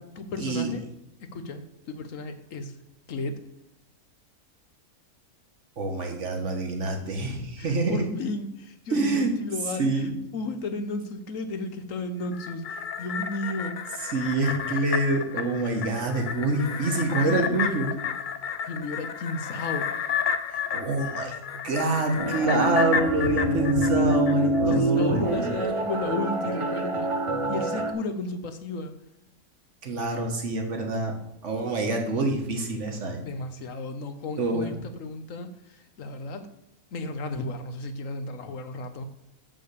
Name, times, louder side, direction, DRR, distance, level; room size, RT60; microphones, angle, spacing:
voice 1, 0.2-0.8 1.3-2.8 3.1-3.4 7.6-14.1 17.2-17.7 18.6-20.1 24.7-27.1 27.5-28.9 33.2-36.5 36.9-39.1, left 2 dB, 65° left, 9 dB, 1.2 m, -34 dB
voice 2, 5.8-8.0 8.9-9.3 9.8-10.1 14.1-17.9 20.5-21.3 21.6-25.6 29.8-31.1 31.4-33.2 34.4-34.7, right 2 dB, 55° right, 3 dB, 1.6 m, -26 dB
sound 1, 12.2-24.8 25.2-25.3, left 7 dB, 80° left, 0.4 m, -32 dB
sound 2, 22.2-27.9, right 1 dB, 40° right, 0.5 m, -26 dB
6.7 x 5.7 x 6.6 m, 0.85 s
omnidirectional pair, 1.5 m